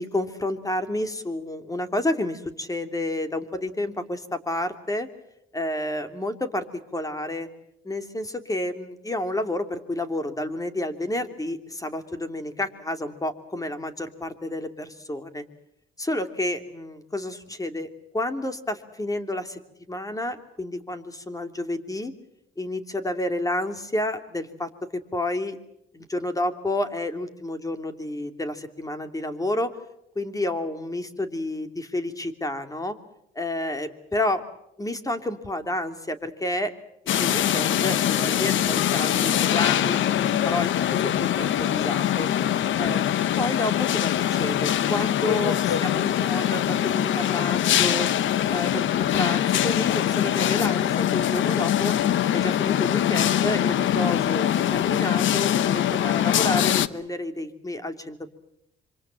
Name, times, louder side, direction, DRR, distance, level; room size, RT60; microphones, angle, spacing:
voice 1, 0.0-5.1 5.5-6.6 6.9-7.5 7.8-15.4 16.0-17.9 18.1-19.6 19.9-22.1 22.6-25.6 25.9-29.8 30.1-33.0 33.3-34.4 34.8-36.7 37.1-42.3 42.8-48.1 48.5-48.8 49.1-51.9 52.3-58.3, left 1 dB, 15° left, 8 dB, 3.0 m, -30 dB
sound 1, 37.1-56.9, left 11 dB, 75° left, 1.1 m, -23 dB
26.5 x 24.5 x 7.6 m, 0.78 s
cardioid pair, 90°, 20 cm